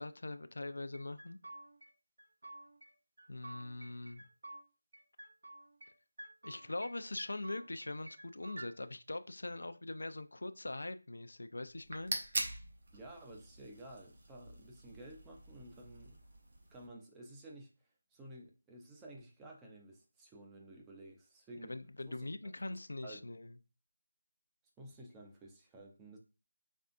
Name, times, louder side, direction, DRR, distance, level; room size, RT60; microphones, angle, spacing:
voice 1, 0.0-1.4 3.3-4.2 6.4-12.4 21.7-23.6, left 2 dB, 70° left, 0.5 m, -42 dB
sound 1, 0.9-1.9 2.2-2.9 3.2-4.6 4.9-5.9 6.2-6.9 7.2-8.7, right 1 dB, 75° right, 0.7 m, -51 dB
sound 2, 11.7-16.9, right 2 dB, 35° right, 1.0 m, -44 dB
voice 2, 12.9-16.2 16.7-17.7 18.1-21.7 22.1-22.3 23.0-23.3 24.8-26.2, right 1 dB, 5° right, 0.5 m, -53 dB
5.3 x 3.4 x 2.5 m
figure-of-eight pair, 175°, 0 cm